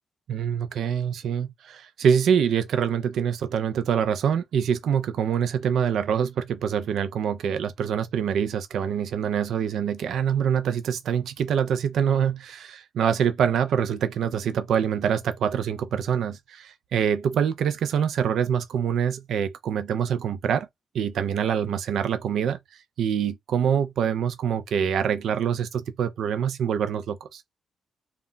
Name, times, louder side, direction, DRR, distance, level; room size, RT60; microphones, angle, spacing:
voice 1, 0.3-20.7 20.9-27.4, right 8 dB, 75° right, 0.4 m, -25 dB
2.2 x 2.1 x 3.7 m
supercardioid pair, 55°, 0 cm